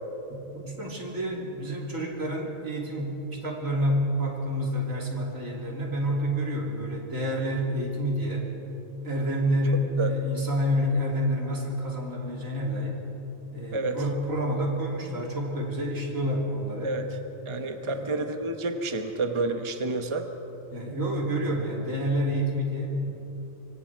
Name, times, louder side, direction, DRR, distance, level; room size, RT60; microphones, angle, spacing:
voice 1, 0.3-8.5 9.0-13.0 13.5-17.0 17.8-18.1 20.7-23.1, equal, 80° right, -1 dB, 3.5 m, -28 dB
voice 2, 17.5-20.3, right 2 dB, 25° right, 6 dB, 1.1 m, -29 dB
25.0 x 25.0 x 4.7 m, 3.0 s
omnidirectional pair, 1.4 m